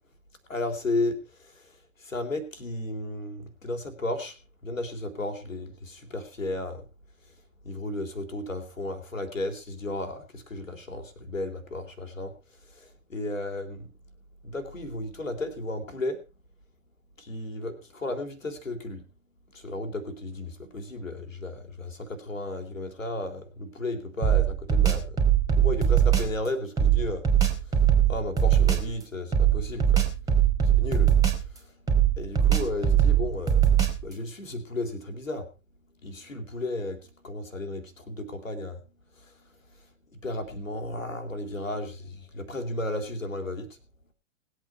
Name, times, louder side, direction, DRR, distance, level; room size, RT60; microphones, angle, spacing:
voice 1, 0.5-1.2 2.0-4.3 4.6-6.8 7.6-12.3 12.8-13.9 14.4-16.2 17.2-19.0 19.5-25.2 25.6-27.3 28.1-30.1 30.7-31.1 32.2-33.6 34.0-35.5 36.0-38.8 40.2-43.7, left 2 dB, 75° left, 6 dB, 3.2 m, -34 dB
sound 1, 24.2-26.4 26.8-28.9 29.3-31.6 31.9-34.1, right 9 dB, 10° right, 3.0 m, -21 dB
20.0 x 8.4 x 4.3 m, 0.29 s
figure-of-eight pair, 110°, 39 cm